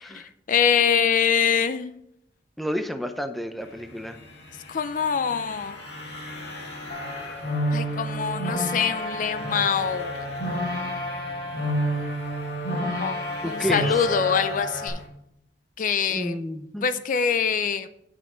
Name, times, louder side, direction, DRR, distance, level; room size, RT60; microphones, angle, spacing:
voice 1, 0.0-2.0 4.7-5.8 7.7-10.1 12.8-13.1 13.4-15.0 15.8-16.4 16.8-17.9, left 7 dB, 45° left, 12 dB, 0.4 m, -24 dB
voice 2, 2.6-4.2 13.4-14.1 16.1-16.8, equal, ahead, 7 dB, 0.6 m, -30 dB
sound 1, 3.6-15.1, left 1 dB, 70° left, 2.2 m, -42 dB
sound 2, 6.9-14.9, equal, 85° left, 3.2 m, -29 dB
9.2 x 6.1 x 5.0 m, 0.77 s
head